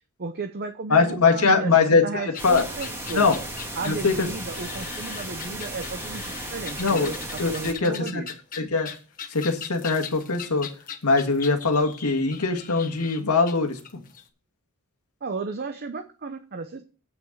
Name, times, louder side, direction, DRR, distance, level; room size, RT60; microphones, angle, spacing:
voice 1, 0.2-3.4 3.7-8.3 15.2-16.8, right 4 dB, 45° right, 6 dB, 0.8 m, -34 dB
voice 2, 0.9-2.6 3.1-3.4 3.8-4.3 6.8-7.1 7.4-8.2 8.6-8.9 9.3-10.7 11.0-14.0, left 4 dB, 85° left, 4 dB, 1.7 m, -22 dB
sound 1, 2.3-14.2, left 8 dB, 40° left, 1.3 m, -40 dB
sound 2, 2.4-7.7, right 1 dB, 10° right, 2.0 m, -35 dB
8.0 x 6.1 x 6.6 m, 0.37 s
head